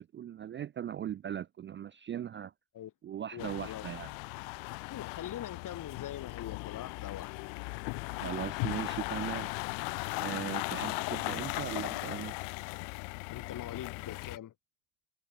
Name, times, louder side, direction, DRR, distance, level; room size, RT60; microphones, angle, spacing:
voice 1, 0.0-2.5 3.0-4.1 8.2-9.5 10.2-12.4, right 10 dB, 25° right, 0.4 m, -39 dB
voice 2, 3.3-3.8 4.9-7.4 13.3-14.5, left 11 dB, 40° left, 1.8 m, -42 dB
sound 1, 3.4-14.4, left 40 dB or more, 85° left, 0.7 m, -37 dB
supercardioid pair, 110°, 46 cm